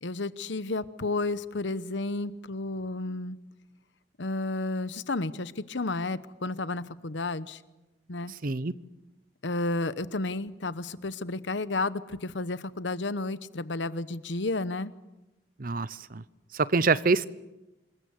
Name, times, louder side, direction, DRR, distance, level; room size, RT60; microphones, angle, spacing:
voice 1, 0.0-3.4 4.2-7.6 8.1-8.3 9.4-14.9, left 2 dB, 85° left, 15 dB, 1.0 m, -32 dB
voice 2, 8.4-8.7 15.6-16.2 16.5-17.3, right 4 dB, 50° right, 17 dB, 0.8 m, -25 dB
26.5 x 21.5 x 8.1 m, 1.0 s
head